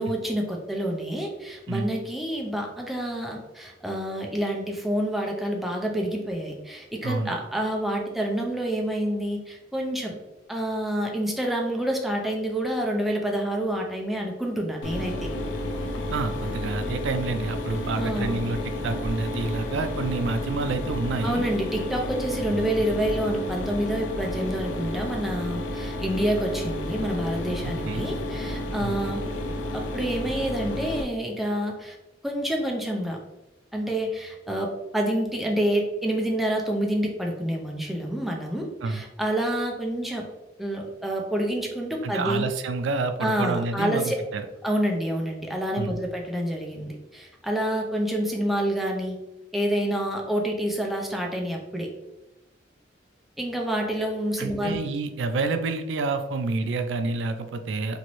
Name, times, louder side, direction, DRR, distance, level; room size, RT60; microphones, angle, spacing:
voice 1, 0.0-10.2 10.5-15.3 18.0-18.5 21.2-29.3 29.7-32.0 32.2-33.2 33.7-40.3 40.6-42.5 43.2-44.2 44.6-49.2 49.5-51.9 53.4-54.8, right 1 dB, ahead, 0 dB, 0.5 m, -28 dB
voice 2, 7.0-7.3 16.1-21.5 22.5-22.7 27.9-28.1 28.8-29.1 38.8-39.0 42.0-44.5 45.8-46.0 54.4-58.0, right 3 dB, 85° right, 8 dB, 0.3 m, -28 dB
Mechanisms, 14.8-31.0, left 1 dB, 85° left, 0.5 m, -31 dB
3.0 x 2.6 x 2.9 m, 1.0 s
head